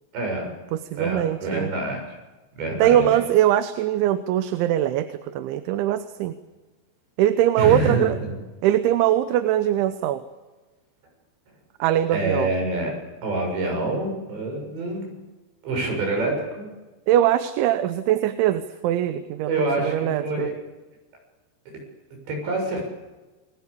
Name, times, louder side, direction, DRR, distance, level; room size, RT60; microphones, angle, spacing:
voice 1, 0.1-0.5 1.0-2.0 2.6-3.1 7.6-8.3 12.1-12.9 13.2-15.1 15.6-16.7 19.5-20.5 22.3-22.9, right 2 dB, 70° right, 2 dB, 9.1 m, -26 dB
voice 2, 0.7-1.7 2.8-6.3 7.2-8.2 8.6-10.2 11.8-12.5 17.1-20.5, right 12 dB, 85° right, 11 dB, 3.4 m, -22 dB
29.0 x 20.5 x 8.5 m, 1.2 s
omnidirectional pair, 5.3 m